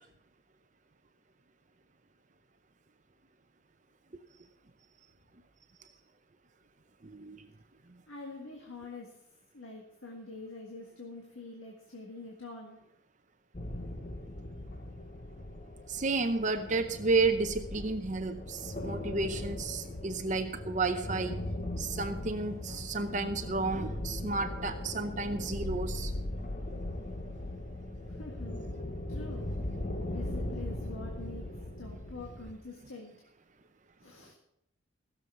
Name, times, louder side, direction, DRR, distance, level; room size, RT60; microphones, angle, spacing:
voice 1, 7.0-7.5 15.9-21.4 21.8-26.1, right 3 dB, 35° right, 8 dB, 0.7 m, -32 dB
voice 2, 8.1-9.2 9.5-12.8 28.1-28.6 29.1-29.5 30.1-33.1 34.0-34.3, left 3 dB, 80° left, 0 dB, 1.8 m, -46 dB
sound 1, 13.5-32.5, left 1 dB, 40° left, 1.1 m, -39 dB
16.0 x 7.0 x 7.0 m, 0.84 s
head